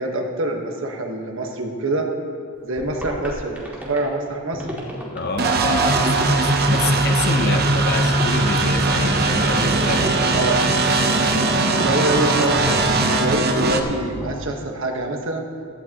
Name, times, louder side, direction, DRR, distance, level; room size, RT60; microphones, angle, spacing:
voice 1, 0.0-2.1 2.6-4.7 7.3-7.6 10.3-10.6 11.7-15.5, right 2 dB, 65° right, 2 dB, 1.4 m, -25 dB
sound 1, 2.8-4.0 4.5-5.2 5.6-6.2 6.7-7.2 7.8-8.4 8.8-9.5 9.9-10.5 11.0-11.6 12.1-14.5, equal, 10° right, 2.2 m, -32 dB
voice 2, 5.1-10.5, left 3 dB, 50° left, 5 dB, 0.9 m, -28 dB
sound 2, 5.4-13.8, right 2 dB, 50° right, 0.9 m, -19 dB
16.0 x 12.5 x 3.0 m, 2.3 s
head